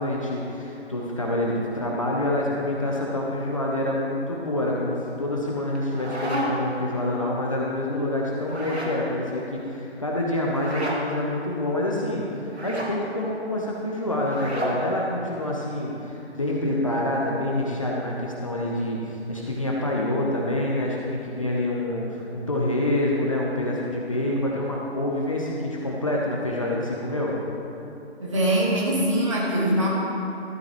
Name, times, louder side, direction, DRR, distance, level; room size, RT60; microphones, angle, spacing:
voice 1, 0.0-27.3, left 1 dB, 30° left, -3 dB, 0.9 m, -27 dB
sound 1, 5.7-6.8 8.4-9.0 10.5-11.0 12.5-12.9 14.2-14.8, right 1 dB, 75° right, 2.4 m, -31 dB
voice 2, 28.2-29.9, right 1 dB, 30° right, -5 dB, 2.1 m, -22 dB
13.0 x 12.0 x 3.1 m, 2.9 s
figure-of-eight pair, 155°, 33 cm